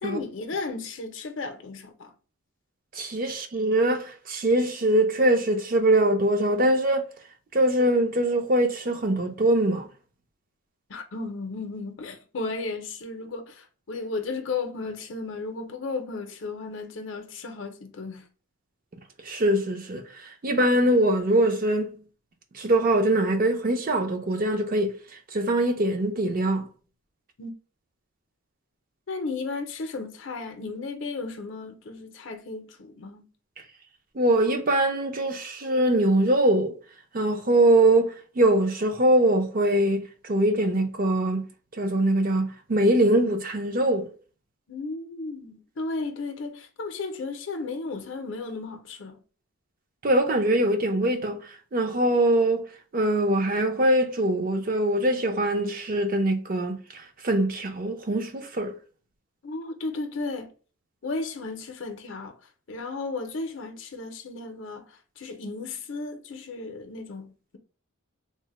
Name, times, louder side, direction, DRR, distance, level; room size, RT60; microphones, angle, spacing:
voice 1, 0.0-2.1 10.9-18.2 27.4-27.5 29.1-33.3 44.7-49.2 59.4-60.5 61.0-62.4 62.7-64.8 65.2-67.6, left 3 dB, 60° left, 0.5 m, -34 dB
voice 2, 3.0-7.1 7.5-9.9 19.2-20.0 20.4-22.0 22.5-24.9 25.3-26.6 34.2-36.8 37.1-41.4 41.8-44.1 50.0-51.4 51.7-52.7 52.9-56.8 57.2-58.7, right 1 dB, 40° right, 0.5 m, -22 dB
3.2 x 2.0 x 3.0 m
head